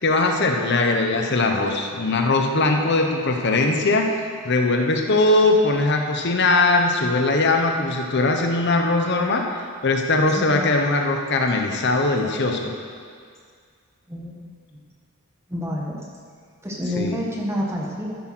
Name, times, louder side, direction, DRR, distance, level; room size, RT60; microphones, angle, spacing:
voice 1, 0.0-12.7 17.0-17.2, left 2 dB, 50° left, 3 dB, 0.9 m, -20 dB
voice 2, 15.5-16.0 16.6-18.2, left 1 dB, 10° right, -3 dB, 1.6 m, -28 dB
13.5 x 8.0 x 6.1 m, 2.1 s
head